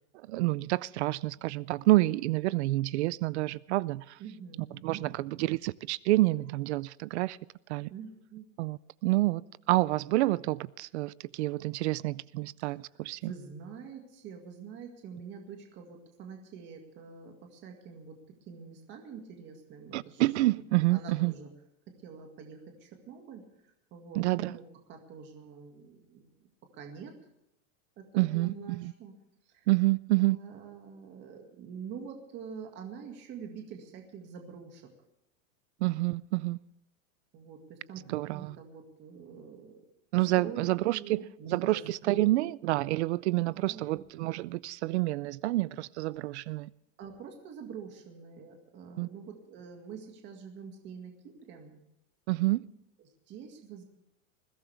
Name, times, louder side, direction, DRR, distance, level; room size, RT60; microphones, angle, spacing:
voice 1, 0.3-4.2 4.8-7.4 7.7-7.9 8.6-9.4 9.7-13.3 19.9-21.3 24.2-24.5 28.2-28.9 29.7-30.4 35.8-36.6 38.1-38.6 40.1-46.7 49.0-49.1 52.3-52.7, right 19 dB, 55° right, 0.4 m, -28 dB
voice 2, 4.2-5.4 7.9-8.5 13.2-18.2 18.5-20.2 20.9-21.5 21.9-27.2 28.0-29.1 29.5-29.7 30.2-34.9 37.3-39.8 40.4-42.3 43.3-44.0 47.0-51.8 53.0-53.8, right 6 dB, 25° right, 2.0 m, -46 dB
21.0 x 16.5 x 3.4 m
supercardioid pair, 180°, 40 cm